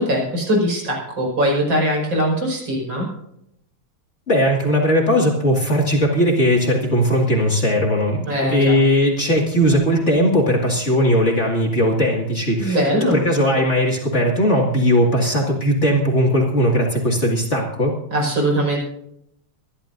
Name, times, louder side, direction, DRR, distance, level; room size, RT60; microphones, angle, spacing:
voice 1, 0.0-3.1 8.3-8.8 12.6-13.1 18.1-18.8, equal, 65° right, -1 dB, 5.9 m, -21 dB
voice 2, 4.3-17.9, equal, 35° left, -1 dB, 2.4 m, -18 dB
25.0 x 11.5 x 2.6 m, 0.77 s
omnidirectional pair, 2.3 m